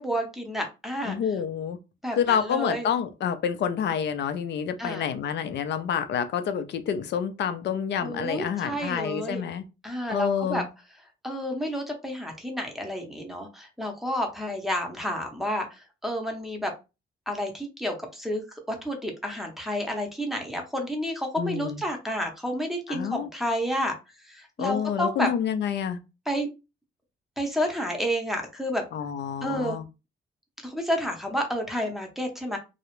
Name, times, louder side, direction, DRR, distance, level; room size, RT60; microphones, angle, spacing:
voice 1, 0.0-1.2 2.0-2.9 4.8-5.1 8.0-9.4 9.8-10.6 11.2-16.7 17.3-18.4 18.7-23.9 24.3-25.3 26.3-26.5 27.4-28.8 29.4-29.8 30.6-32.6, equal, ahead, 0.7 m, -30 dB
voice 2, 1.0-1.8 2.1-9.6 10.1-10.7 21.4-21.8 22.9-23.3 24.6-26.0 28.9-29.8, left 8 dB, 60° left, 0.5 m, -28 dB
2.3 x 2.0 x 3.0 m
cardioid pair, 90°, 20 cm